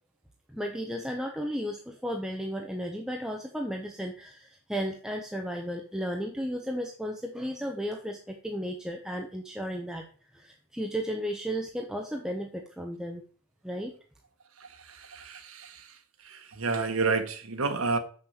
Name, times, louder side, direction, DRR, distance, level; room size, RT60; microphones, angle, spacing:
voice 1, 0.5-10.1 10.3-13.2 13.6-13.9, equal, 5° right, 2 dB, 0.8 m, -34 dB
voice 2, 14.6-15.9 16.2-18.0, right 4 dB, 70° right, 8 dB, 1.4 m, -30 dB
6.7 x 6.6 x 7.2 m, 0.43 s
head